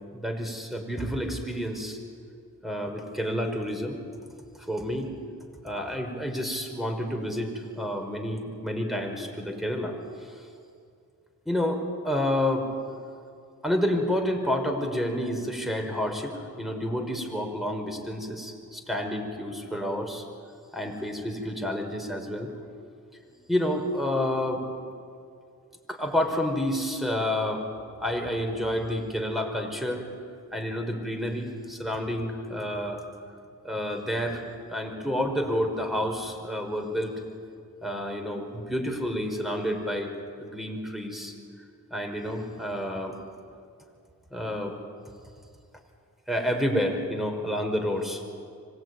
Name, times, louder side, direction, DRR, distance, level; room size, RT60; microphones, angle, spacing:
voice 1, 0.1-2.0 2.6-4.0 4.6-5.1 5.6-10.5 11.5-12.7 13.6-20.2 20.7-22.5 23.5-24.6 25.9-27.7 28.0-30.0 30.5-33.0 33.6-34.4 34.7-37.1 37.8-40.1 40.4-41.3 41.9-43.2 44.3-44.8 46.3-48.2, equal, ahead, 4 dB, 5.2 m, -29 dB
25.0 x 19.5 x 9.7 m, 2.3 s
cardioid pair, 55°, 37 cm